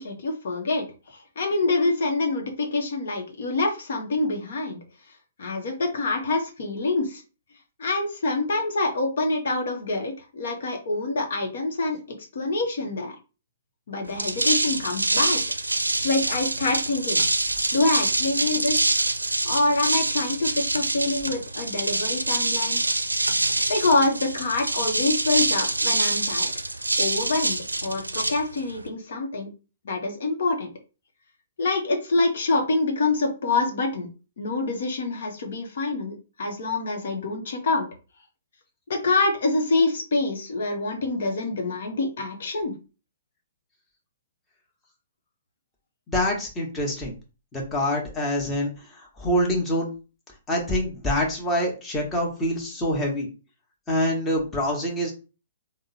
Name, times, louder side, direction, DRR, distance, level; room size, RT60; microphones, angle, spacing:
voice 1, 0.0-4.8 5.4-7.2 7.8-12.0 12.3-13.2 13.9-15.4 16.0-18.9 19.4-22.8 23.7-26.5 27.0-29.5 29.8-30.7 31.6-34.1 34.4-37.9 38.9-42.7, left 3 dB, 60° left, 3 dB, 0.9 m, -26 dB
sound 1, 14.1-28.9, right 2 dB, 90° right, 0.4 m, -25 dB
voice 2, 46.1-47.1 47.5-48.7 49.2-49.9 50.5-53.3 53.9-55.1, equal, 15° left, -1 dB, 1.2 m, -25 dB
3.6 x 2.1 x 4.0 m, 0.32 s
figure-of-eight pair, 120°, 0 cm